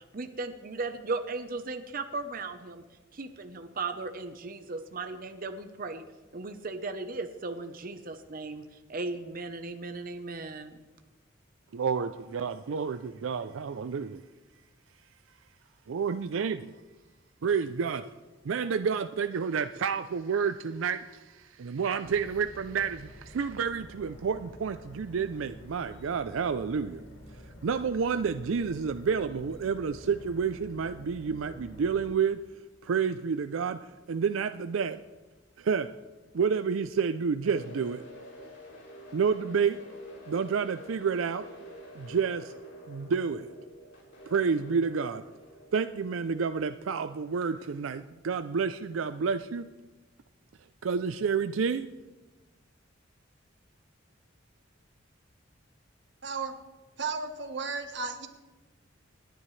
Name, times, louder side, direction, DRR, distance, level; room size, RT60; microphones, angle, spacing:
voice 1, 0.0-2.8 3.1-6.0 6.3-10.8, right 3 dB, 45° right, 0.8 m, -36 dB
voice 2, 11.7-14.2 15.9-16.7 17.4-18.1 18.4-27.0 27.6-32.4 32.8-35.0 35.6-35.9 36.3-38.0 39.1-39.8 40.3-41.5 41.9-42.5 42.9-43.5 44.3-45.2 45.7-49.7 50.8-51.9, right 6 dB, 90° right, 0.4 m, -29 dB
sound 1, 22.0-32.1, equal, 90° left, 1.8 m, -49 dB
sound 2, 37.4-47.5, right 1 dB, 65° left, 3.8 m, -49 dB
voice 3, 56.2-56.5 57.0-58.3, right 4 dB, 65° right, 1.3 m, -34 dB
27.0 x 10.5 x 3.2 m
head